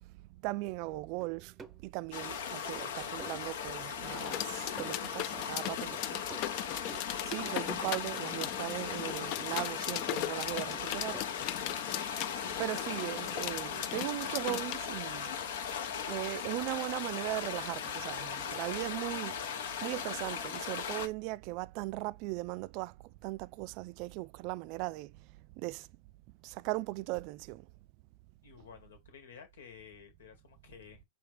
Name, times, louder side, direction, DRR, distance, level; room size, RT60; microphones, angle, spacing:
voice 1, 0.4-1.5 1.8-6.2 7.2-10.7 10.9-11.2 12.1-12.2 12.6-15.3 16.1-19.3 19.8-22.9 23.2-25.1 25.6-25.8 26.6-27.6, right 20 dB, 45° right, 0.3 m, -38 dB
sound 1, 1.2-1.8 2.2-2.5 2.8-3.4 3.8-3.9 4.4-4.5 4.8-5.5 5.9-6.0 6.3-7.0 7.4-8.0 8.4-8.6 9.1-9.6 10.1-10.4 10.7-11.3, right 4 dB, 15° right, 0.7 m, -51 dB
sound 2, 2.1-21.1, left 7 dB, 70° left, 0.9 m, -38 dB
sound 3, 4.0-14.7, left 14 dB, 45° left, 0.3 m, -39 dB
voice 2, 10.3-11.0 28.4-31.0, left 7 dB, 85° left, 1.9 m, -51 dB
4.8 x 3.2 x 3.3 m
hypercardioid pair, 140°, 0 cm